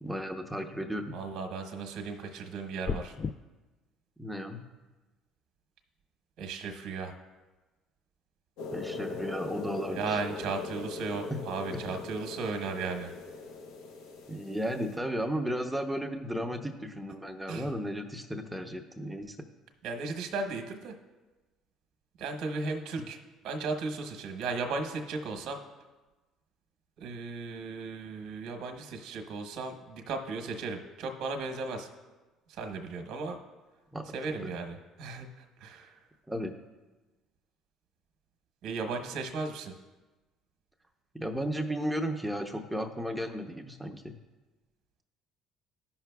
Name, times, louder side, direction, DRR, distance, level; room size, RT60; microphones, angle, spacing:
voice 1, 0.0-1.2 4.2-4.6 8.7-10.2 11.3-11.4 11.7-11.8 14.3-19.4 33.9-34.0 36.3-36.5 41.1-44.2, equal, 5° right, 5 dB, 0.7 m, -34 dB
voice 2, 1.1-3.1 6.4-7.2 9.9-13.1 17.5-17.7 19.8-20.9 22.2-23.2 23.4-25.6 27.0-31.9 32.5-33.4 34.1-35.3 35.6-36.0 38.6-39.7, right 4 dB, 65° right, 5 dB, 0.9 m, -35 dB
sound 1, 2.8-3.3, left 5 dB, 40° left, 0.3 m, -33 dB
sound 2, 8.6-14.9, left 3 dB, 80° left, 1.0 m, -40 dB
13.0 x 5.7 x 2.3 m, 1.2 s
supercardioid pair, 75°, 0 cm